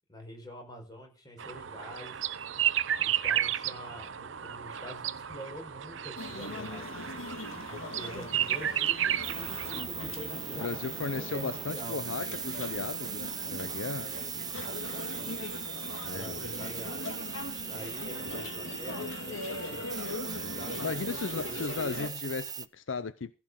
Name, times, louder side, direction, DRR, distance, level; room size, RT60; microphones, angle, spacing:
voice 1, 0.1-2.2 3.0-7.0 7.7-12.0 14.0-15.6 16.1-17.1 17.7-19.8 20.4-21.5, equal, 20° left, 4.7 m, -46 dB
sound 1, 1.4-9.8, right 10 dB, 65° right, 0.7 m, -32 dB
sound 2, 6.2-22.1, left 2 dB, 85° left, 2.0 m, -40 dB
sound 3, 9.2-22.7, right 8 dB, 20° right, 0.5 m, -39 dB
voice 2, 10.6-14.1 16.0-16.6 20.3-23.3, left 4 dB, 70° left, 0.6 m, -36 dB
15.5 x 6.1 x 6.3 m
head